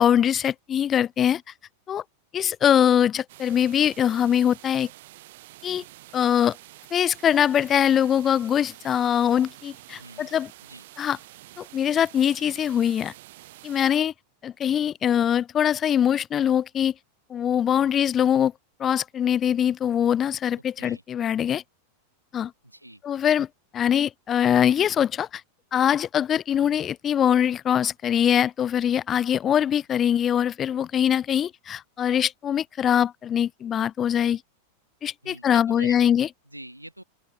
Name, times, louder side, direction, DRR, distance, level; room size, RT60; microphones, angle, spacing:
voice 1, 0.0-1.4 1.9-2.0 2.3-4.9 5.6-5.8 6.1-6.6 6.9-10.5 11.0-11.2 11.6-13.1 13.6-14.1 14.4-16.9 17.3-18.5 18.8-21.6 22.3-22.5 23.0-23.5 23.7-25.4 25.7-34.4 35.0-36.3, left 9 dB, 25° left, 0.5 m, -22 dB
sound 1, 3.3-13.9, right 17 dB, 55° right, 1.0 m, -48 dB
voice 2, 10.0-10.3 10.6-10.8 20.8-21.0 22.6-23.0 35.2-36.1 36.5-37.0, right 1 dB, 85° right, 2.3 m, -43 dB
open air
figure-of-eight pair, 90°, 0 cm